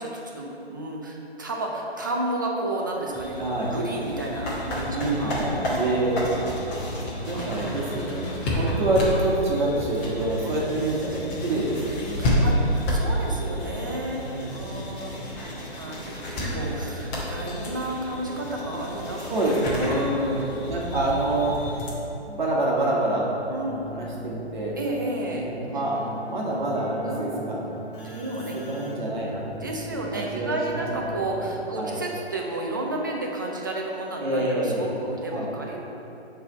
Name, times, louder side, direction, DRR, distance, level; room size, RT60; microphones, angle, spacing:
voice 1, 0.0-6.4 6.8-6.9 7.3-7.7 8.3-8.6 10.4-10.7 12.1-14.2 14.5-19.2 19.8-20.6 23.5-24.0 24.8-25.4 27.1-27.5 28.0-28.6 29.5-35.8, right 1 dB, 20° right, -1 dB, 0.4 m, -32 dB
sound 1, 3.1-21.9, equal, 20° left, 1.1 m, -30 dB
voice 2, 3.4-3.7 4.9-6.4 7.3-12.3 14.1-14.5 19.3-21.6 22.3-23.3 23.9-24.7 25.3-27.7 28.7-29.8 30.1-30.8 31.1-31.2 31.8-32.0 34.2-34.9 35.3-35.5, right 2 dB, 45° right, -4 dB, 1.4 m, -27 dB
Keyboard (musical), 23.5-31.9, right 1 dB, 55° left, 1.4 m, -40 dB
6.9 x 3.4 x 6.0 m, 3.0 s
figure-of-eight pair, 140°, 33 cm